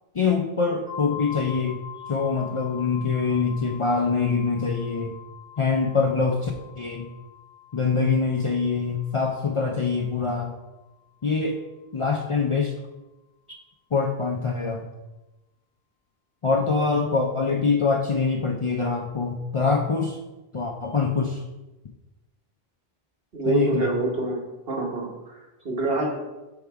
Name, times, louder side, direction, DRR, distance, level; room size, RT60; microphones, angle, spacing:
voice 1, 0.1-1.8 2.1-5.1 5.6-7.1 7.7-10.6 11.2-11.6 11.9-12.7 13.9-14.9 16.4-20.2 20.5-21.4 23.4-23.9, left 4 dB, 45° left, 1 dB, 0.4 m, -24 dB
sound 1, 0.9-10.5, left 10 dB, 5° right, 0.6 m, -43 dB
voice 2, 23.3-24.4 24.7-25.3 25.6-26.1, right 3 dB, 70° right, -1 dB, 1.5 m, -26 dB
6.5 x 3.6 x 4.6 m, 1.1 s
omnidirectional pair, 1.0 m